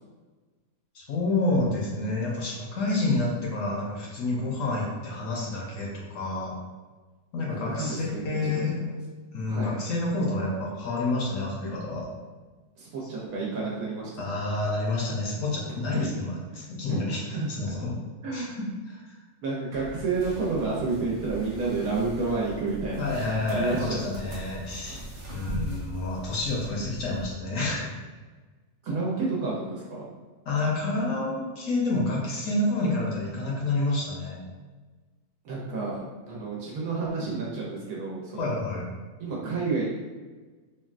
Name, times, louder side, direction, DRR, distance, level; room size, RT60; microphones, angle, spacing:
voice 1, 0.9-6.5 7.3-8.8 9.3-12.1 14.2-17.2 17.6-17.9 18.3-19.1 23.0-27.9 30.5-34.4 38.4-38.9, left 2 dB, 65° left, -3 dB, 0.9 m, -29 dB
voice 2, 7.5-8.9 9.5-9.8 12.8-14.4 15.9-16.1 16.5-16.6 16.9-17.0 17.3-17.5 18.2-18.6 19.4-24.2 24.9-25.0 28.8-30.1 35.4-38.5 39.2-39.9, right 3 dB, 80° right, -4 dB, 1.1 m, -30 dB
sound 1, 19.7-27.3, right 1 dB, 55° right, 0.6 m, -39 dB
3.6 x 2.2 x 2.4 m, 1.3 s
omnidirectional pair, 1.6 m